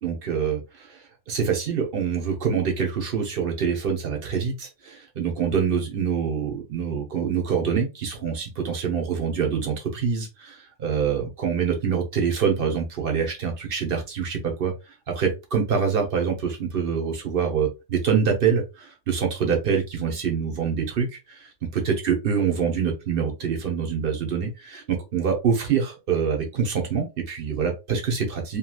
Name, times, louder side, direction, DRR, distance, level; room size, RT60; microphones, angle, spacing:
voice 1, 0.0-1.0 1.3-14.7 15.1-21.5 21.7-28.6, right 6 dB, 50° right, 2 dB, 1.0 m, -25 dB
3.1 x 2.8 x 2.3 m, 0.26 s
omnidirectional pair, 1.4 m